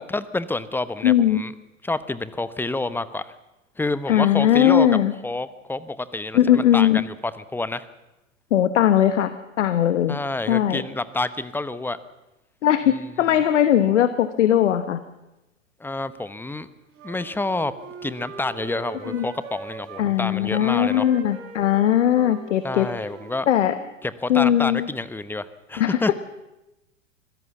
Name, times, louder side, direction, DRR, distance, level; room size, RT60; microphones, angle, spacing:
voice 1, 0.0-1.5 1.8-3.3 3.8-5.0 5.2-7.9 10.1-12.0 12.9-13.1 15.8-16.7 17.0-17.7 18.0-21.1 22.6-23.5 24.0-26.1, left 2 dB, 5° left, 15 dB, 0.9 m, -28 dB
voice 2, 1.0-1.4 4.1-5.1 6.3-7.0 8.5-10.2 10.5-10.8 12.6-15.0 19.1-19.3 20.0-22.9 23.5-23.8 24.3-24.9 25.8-25.9, left 11 dB, 65° left, 11 dB, 1.3 m, -19 dB
Wind instrument woodwind instrument, 16.9-20.1 20.5-24.0, right 5 dB, 35° right, 3.4 m, -41 dB
25.0 x 16.5 x 7.2 m, 0.98 s
figure-of-eight pair, 95°, 39 cm